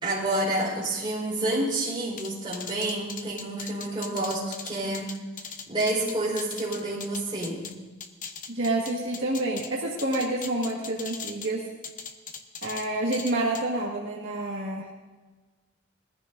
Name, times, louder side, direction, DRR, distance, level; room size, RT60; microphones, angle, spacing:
voice 1, 0.0-5.1 5.7-7.7, right 1 dB, 20° right, -7 dB, 4.2 m, -29 dB
sound 1, 2.2-7.7 8.0-9.7 10.0-11.5 11.8-12.9 13.1-13.6, left 6 dB, 40° left, 0.8 m, -39 dB
voice 2, 8.5-11.7 12.6-14.9, right 2 dB, 60° right, -4 dB, 1.9 m, -28 dB
20.5 x 14.5 x 2.7 m, 1.3 s
head